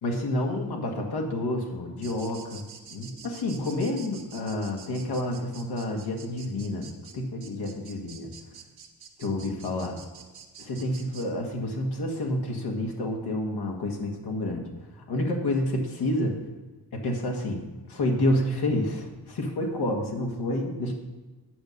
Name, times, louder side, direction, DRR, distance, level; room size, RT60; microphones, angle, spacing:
voice 1, 0.0-2.6 2.9-8.3 9.2-10.0 10.6-14.6 14.9-16.4 17.0-20.9, left 1 dB, 70° left, 1 dB, 1.8 m, -29 dB
sound 1, 2.0-11.3, right 7 dB, 65° right, 1.6 m, -48 dB
9.8 x 5.1 x 6.7 m, 1.2 s
cardioid pair, 60°, 40 cm